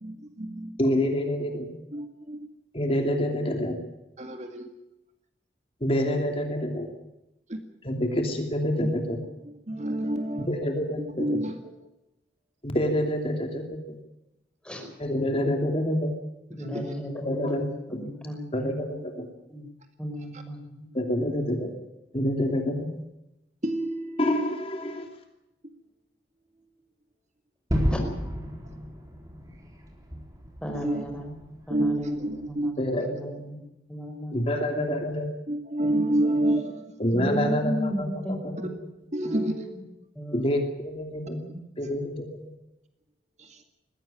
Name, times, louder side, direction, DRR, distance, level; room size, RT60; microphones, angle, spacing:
voice 1, 0.0-0.8 1.9-2.4 4.2-4.7 7.5-7.6 9.7-10.7 11.0-11.5 16.7-16.9 23.6-24.4 30.8-31.0 31.7-32.7 35.5-36.9 39.1-39.7 41.4-41.5, right 1 dB, 40° right, 6 dB, 2.0 m, -28 dB
voice 2, 0.8-1.7 2.7-3.8 5.8-6.9 7.8-9.2 10.4-11.4 12.6-14.0 15.0-16.1 17.2-17.6 18.5-19.3 20.9-21.7 22.1-22.9 24.2-25.0 32.8-33.3 34.3-35.3 37.0-38.1 38.4-38.5 40.3-41.4 41.8-42.5, left 1 dB, 30° left, 4 dB, 2.9 m, -27 dB
voice 3, 16.6-19.0 19.5-19.7 20.0-20.9 27.9-28.0 30.6-33.6 33.9-34.5 34.8-35.0 37.1-38.7 39.2-39.8 40.2-40.6, equal, 5° left, 2 dB, 5.3 m, -35 dB
Gunshot gunfire / Fireworks / Boom, 27.7-32.5, equal, 20° right, 4.0 m, -32 dB
21.0 x 16.5 x 8.9 m, 0.92 s
head